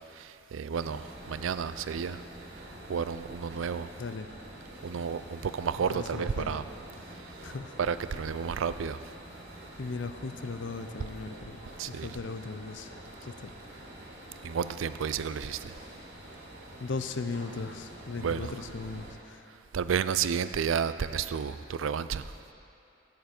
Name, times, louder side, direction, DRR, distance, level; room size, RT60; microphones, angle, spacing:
voice 1, 0.2-2.2 2.9-3.9 4.8-6.6 7.8-9.0 11.8-12.1 14.4-15.7 18.2-18.6 19.7-22.2, right 6 dB, 85° right, 13 dB, 0.4 m, -31 dB
sound 1, 0.7-19.1, right 1 dB, 55° right, 2.1 m, -47 dB
voice 2, 5.9-6.6 7.4-7.8 9.8-11.6 11.9-12.9 13.2-13.5 16.8-19.5, left 4 dB, 70° left, 9 dB, 0.6 m, -37 dB
15.5 x 9.4 x 4.4 m, 2.7 s
head